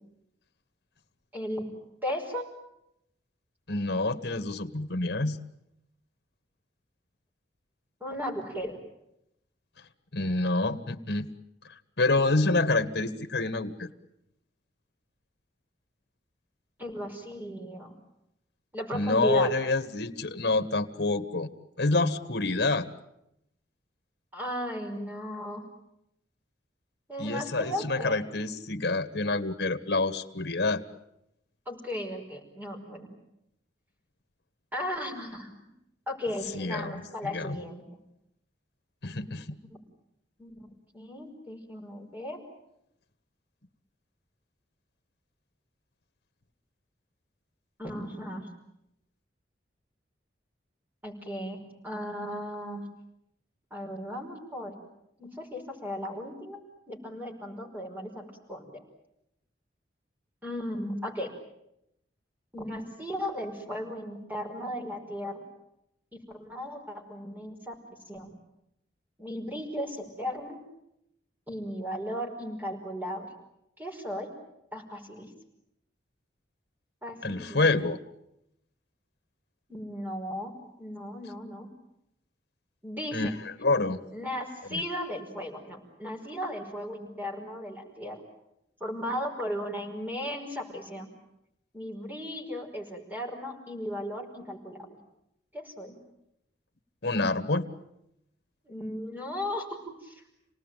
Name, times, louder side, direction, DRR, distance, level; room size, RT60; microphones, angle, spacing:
voice 1, 1.3-1.7 2.0-2.5 8.0-8.8 16.8-17.9 18.7-19.5 24.3-25.6 27.1-28.5 31.7-33.1 34.7-35.7 36.1-37.8 39.7-39.8 40.4-40.7 40.9-42.4 47.8-48.5 51.0-51.6 51.8-52.9 53.7-54.7 55.2-56.6 56.9-58.8 60.4-61.3 62.5-65.4 66.1-67.8 68.1-68.3 69.2-70.6 71.5-73.3 73.8-74.3 74.7-75.3 77.0-77.6 79.7-81.7 82.8-83.2 84.1-88.2 88.8-91.1 91.7-94.9 95.5-96.0 98.7-100.2, equal, 10° right, 2 dB, 5.4 m, -36 dB
voice 2, 3.7-5.4 10.1-11.3 11.7-13.9 18.9-21.5 21.8-22.9 27.2-30.8 36.5-37.6 39.0-39.6 77.2-78.0 83.1-83.3 83.6-84.0 84.7-84.8 97.0-97.7, left 2 dB, 75° left, 10 dB, 1.6 m, -27 dB
28.5 x 19.0 x 9.2 m, 0.82 s
head